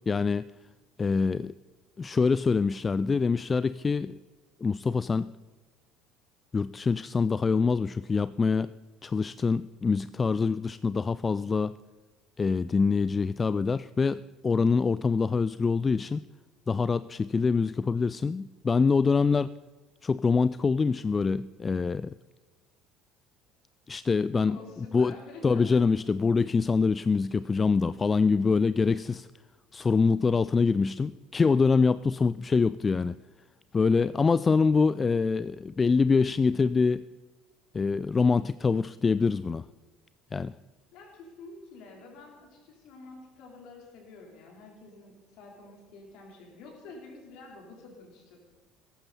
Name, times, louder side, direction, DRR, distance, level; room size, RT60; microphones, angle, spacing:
voice 1, 0.1-0.4 1.0-1.5 2.0-4.1 4.6-5.3 6.5-8.7 9.0-11.8 12.4-16.2 16.7-19.5 20.0-22.1 23.9-24.6 24.9-25.1 25.4-29.3 29.7-33.2 33.7-37.0 37.7-39.7 40.3-40.5, left 4 dB, 25° left, 17 dB, 0.3 m, -25 dB
voice 2, 24.3-25.8 40.9-48.4, left 3 dB, 55° left, 1 dB, 4.1 m, -48 dB
17.0 x 14.0 x 4.3 m, 1.3 s
figure-of-eight pair, 60°, 0 cm